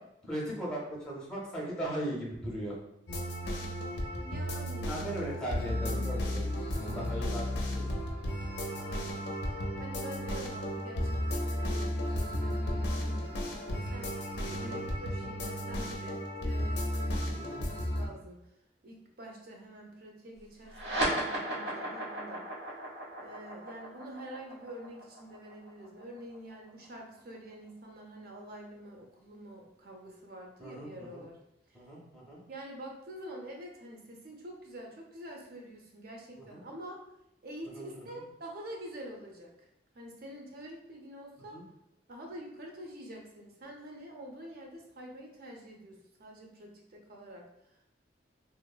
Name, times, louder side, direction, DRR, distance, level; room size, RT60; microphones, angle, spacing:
voice 1, 0.3-2.8 4.8-7.4 7.7-7.9 14.4-14.8 17.4-17.6 30.6-31.2 31.7-32.4 36.5-36.6 37.7-38.0 41.5-41.6, right 1 dB, 5° left, -4 dB, 0.6 m, -38 dB
sound 1, 3.1-18.1, equal, 75° left, 0.5 m, -34 dB
voice 2, 4.2-5.2 6.9-7.5 8.7-9.3 9.8-14.2 14.6-18.4 18.8-22.4 23.2-31.4 31.7-31.8 32.5-37.0 37.4-39.5 39.9-41.6 42.1-47.4, right 1 dB, 60° right, 0 dB, 0.6 m, -47 dB
sound 2, 20.7-27.5, right 1 dB, 85° right, 0.9 m, -36 dB
2.9 x 2.0 x 2.3 m, 0.82 s
head